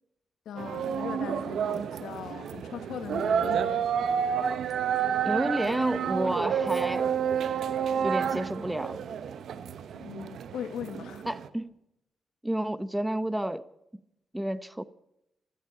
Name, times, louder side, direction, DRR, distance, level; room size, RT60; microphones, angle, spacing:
voice 1, 0.5-3.9 9.9-11.3, left 8 dB, 85° left, 1.7 m, -39 dB
sound 1, 0.6-11.5, right 8 dB, 80° right, 1.0 m, -30 dB
voice 2, 5.2-7.1 8.0-9.0 11.3-11.7 12.4-13.7 14.3-14.8, right 1 dB, 5° right, 0.8 m, -30 dB
15.5 x 13.5 x 5.6 m
cardioid pair, 75°, 0 cm